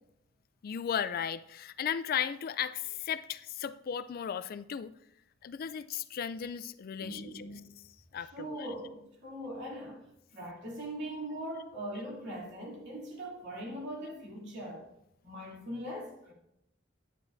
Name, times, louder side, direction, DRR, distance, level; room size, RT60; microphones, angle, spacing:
voice 1, 0.6-4.9 5.4-7.4 8.1-8.7, left 8 dB, 50° left, 0.3 m, -35 dB
voice 2, 6.9-7.7 8.1-10.1 10.3-14.9 15.2-16.3, right 1 dB, 65° right, 2.8 m, -41 dB
10.5 x 8.5 x 2.6 m
head